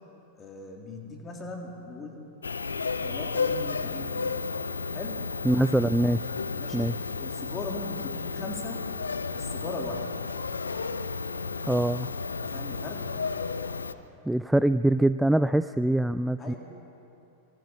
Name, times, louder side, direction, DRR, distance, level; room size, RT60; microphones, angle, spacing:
voice 1, 0.3-2.2 3.0-4.5 4.9-5.3 6.6-8.9 9.3-10.1 12.4-13.1 15.4-15.5 16.4-16.6, left 2 dB, 20° left, 1 dB, 3.5 m, -39 dB
sound 1, 2.4-13.9, left 4 dB, 75° left, 0.8 m, -32 dB
voice 2, 5.4-6.3 6.7-6.9 11.7-12.1 14.3-16.5, right 1 dB, 5° right, 13 dB, 0.4 m, -24 dB
25.0 x 23.5 x 4.6 m, 2.8 s
figure-of-eight pair, 90°, 0 cm